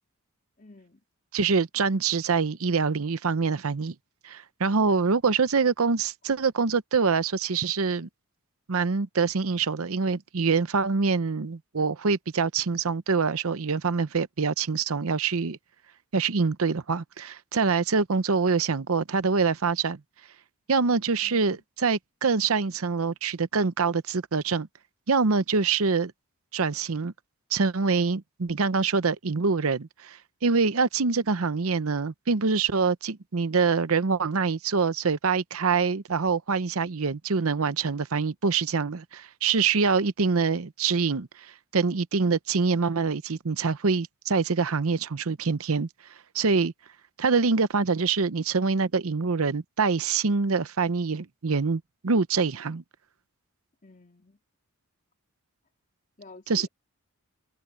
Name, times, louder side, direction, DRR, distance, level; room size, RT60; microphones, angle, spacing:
voice 1, 0.6-1.0 4.7-5.2 21.2-21.6 53.8-54.4 56.2-56.7, left 2 dB, 35° left, 3.0 m, -51 dB
voice 2, 1.3-3.9 4.2-8.1 8.7-15.6 16.1-20.0 20.7-24.7 25.1-26.1 26.5-27.1 27.5-41.3 41.7-45.9 46.3-46.7 47.2-52.8 56.5-56.7, right 4 dB, 65° right, 0.7 m, -25 dB
open air
head